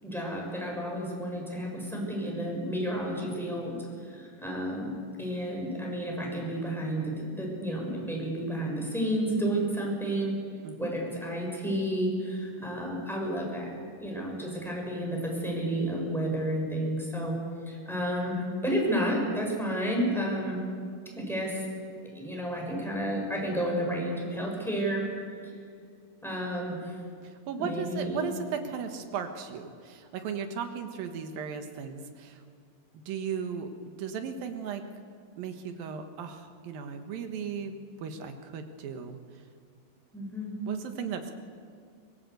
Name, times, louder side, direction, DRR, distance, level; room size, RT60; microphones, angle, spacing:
voice 1, 0.0-3.8 4.1-4.9 5.2-10.4 10.8-13.7 14.0-17.3 17.7-20.6 21.1-21.7 22.0-25.1 26.2-27.0 27.6-28.2 40.1-40.6, equal, ahead, -1 dB, 6.1 m, -31 dB
voice 2, 10.6-10.9 27.5-32.4 33.1-33.7 34.0-34.8 35.4-37.7 38.0-39.2 40.7-41.3, right 7 dB, 80° right, 6 dB, 3.2 m, -36 dB
23.5 x 20.5 x 8.2 m, 2.2 s
omnidirectional pair, 4.1 m